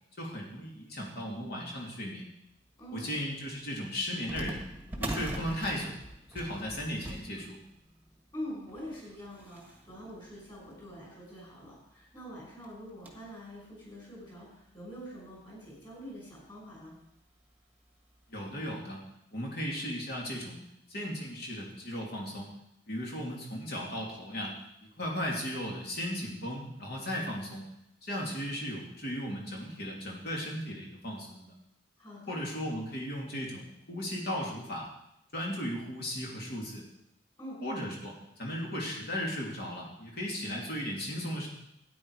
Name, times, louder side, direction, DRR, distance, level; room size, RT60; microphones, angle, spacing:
voice 1, 0.2-2.3 2.9-4.6 5.0-6.0 6.3-7.6 18.3-19.0 19.3-20.6 20.9-22.5 22.9-24.5 24.8-27.6 28.0-31.5 32.3-34.9 35.3-36.8 37.6-41.5, equal, 50° left, -2 dB, 2.9 m, -36 dB
voice 2, 2.8-3.2 8.3-16.9 32.0-32.4 37.4-37.6, equal, 25° left, -4 dB, 6.0 m, -45 dB
sound 1, 2.8-2.9 4.3-11.2 11.8-11.9 12.1-12.2 12.6-13.4 13.9-14.0 14.8-14.9 15.3-15.4 16.8-17.0 17.4-17.5 18.2-18.3, right 1 dB, 10° right, 1.5 m, -43 dB
13.0 x 9.4 x 4.9 m, 0.81 s
head